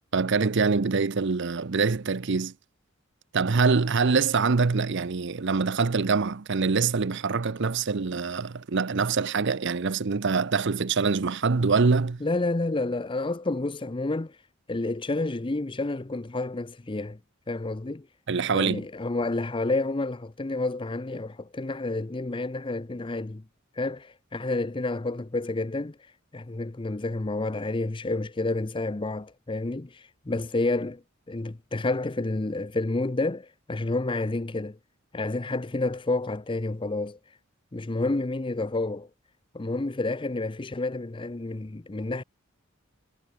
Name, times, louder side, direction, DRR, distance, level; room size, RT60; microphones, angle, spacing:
voice 1, 0.1-2.5 3.3-12.2 18.3-18.8, right 4 dB, 60° right, 0.7 m, -24 dB
voice 2, 12.2-14.3 14.7-17.2 17.5-18.1 18.5-23.4 23.8-26.0 26.3-31.0 31.3-34.8 35.1-37.2 37.7-39.1 39.5-42.2, left 2 dB, 25° left, 0.6 m, -29 dB
head